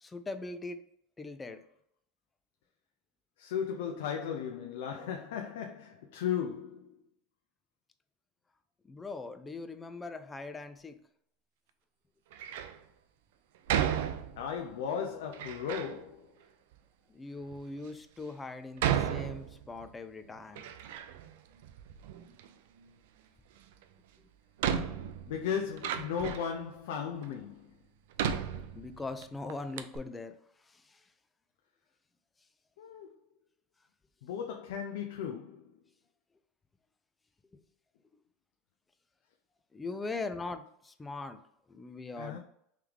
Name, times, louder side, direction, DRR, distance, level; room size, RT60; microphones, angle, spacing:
voice 1, 0.0-0.8 1.2-1.6 8.8-11.0 17.1-20.7 24.2-24.3 28.7-30.4 30.6-31.0 37.5-37.6 39.7-41.4 41.7-42.4, left 3 dB, 15° left, 0.4 m, -41 dB
voice 2, 3.4-7.0 14.4-16.3 25.3-27.8 32.8-33.2 34.2-35.8 42.2-42.4, left 7 dB, 85° left, 0.4 m, -36 dB
Door, 12.3-12.8 13.7-14.7 15.3-16.0 16.7-16.8 17.5-17.6 18.8-19.9 20.3-21.3 21.6-22.5 23.8-23.9 24.6-26.6 27.2-27.3 28.2-29.2 29.5-29.6 29.8-30.0, right 9 dB, 80° right, 0.4 m, -33 dB
3.5 x 3.2 x 3.4 m
supercardioid pair, 140°, 0 cm